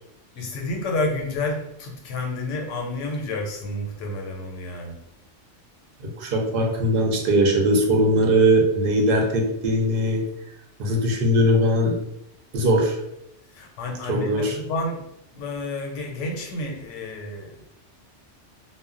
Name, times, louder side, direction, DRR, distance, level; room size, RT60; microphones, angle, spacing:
voice 1, 0.4-5.0 11.5-11.6 13.5-15.0 15.3-17.7, left 2 dB, 80° left, 2 dB, 0.9 m, -30 dB
voice 2, 6.0-10.2 10.8-12.0 12.5-13.0 14.1-14.6, equal, 55° right, 1 dB, 0.7 m, -20 dB
2.1 x 2.1 x 3.6 m, 0.81 s
omnidirectional pair, 1.3 m